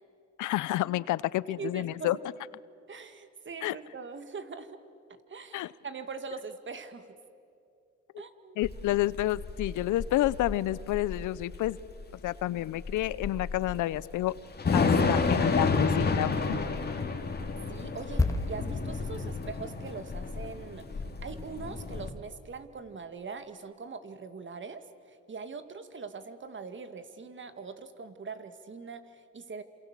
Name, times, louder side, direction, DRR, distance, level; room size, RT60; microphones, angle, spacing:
voice 1, 0.4-2.2 3.6-3.8 5.5-5.7 8.6-11.8 12.2-14.3 14.7-16.6, left 15 dB, 80° left, 20 dB, 0.7 m, -29 dB
voice 2, 1.6-2.2 2.9-4.8 5.3-7.1 8.2-8.6 17.7-29.6, right 4 dB, 40° right, 10 dB, 2.0 m, -42 dB
Thunder / Rain, 8.6-22.1, left 4 dB, 30° left, 2.8 m, -31 dB
sound 1, 18.2-21.8 22.1-22.3, left 2 dB, 10° left, 2.4 m, -34 dB
28.5 x 27.0 x 7.5 m, 2.6 s
cardioid pair, 90°, 30 cm